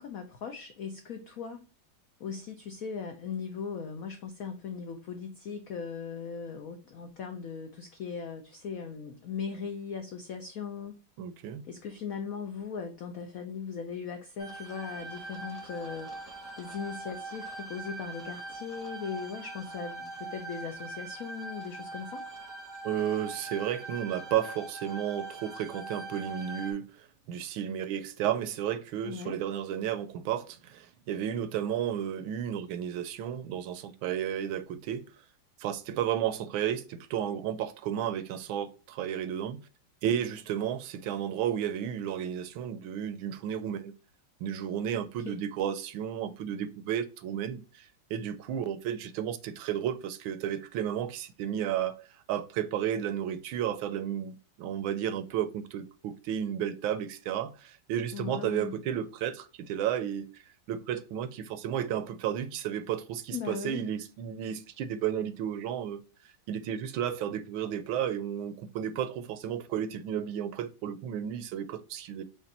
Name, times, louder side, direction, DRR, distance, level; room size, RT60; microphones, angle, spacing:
voice 1, 0.0-1.6 2.2-10.9 11.7-22.2 29.0-29.4 45.3-45.4 58.1-58.8 63.3-63.8, left 6 dB, 80° left, 0.7 m, -39 dB
voice 2, 11.2-11.6 22.8-35.1 35.6-39.7 40.0-43.9 44.4-60.4 60.7-66.0 66.5-72.2, right 10 dB, 80° right, 1.3 m, -33 dB
sound 1, 14.4-26.7, right 2 dB, 15° right, 0.8 m, -42 dB
5.2 x 2.5 x 4.1 m
omnidirectional pair, 2.3 m